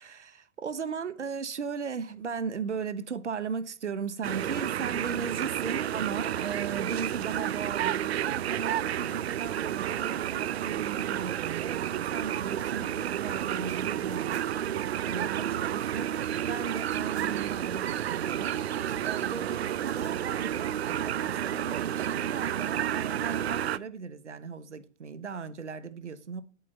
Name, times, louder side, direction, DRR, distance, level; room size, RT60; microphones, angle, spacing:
voice 1, 0.0-14.5 15.0-18.6 19.0-20.7 21.0-26.4, right 6 dB, 80° right, 1.2 m, -37 dB
sound 1, 4.2-23.8, right 11 dB, 65° right, 0.6 m, -31 dB
sound 2, 13.6-14.8 15.0-15.1 15.4-17.4 18.8-19.1 19.8-20.2, right 6 dB, 40° right, 3.7 m, -55 dB
10.5 x 8.4 x 5.3 m
figure-of-eight pair, 105°, 35 cm